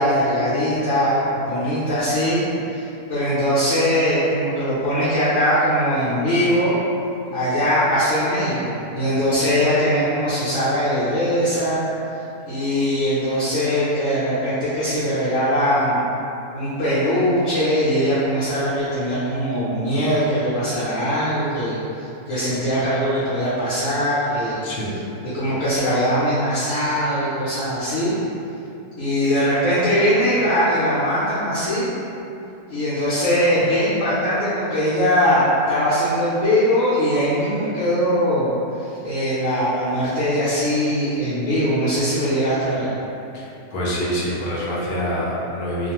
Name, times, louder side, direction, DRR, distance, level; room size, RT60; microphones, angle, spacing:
voice 1, 0.0-2.4 2.7-6.7 7.3-11.8 12.5-16.0 16.5-24.6 25.2-28.1 29.0-31.9 32.7-38.5 38.8-42.9, equal, 65° left, -11 dB, 0.9 m, -21 dB
voice 2, 43.3-45.9, equal, 85° left, -6 dB, 0.4 m, -26 dB
2.4 x 2.3 x 2.9 m, 2.8 s
omnidirectional pair, 1.5 m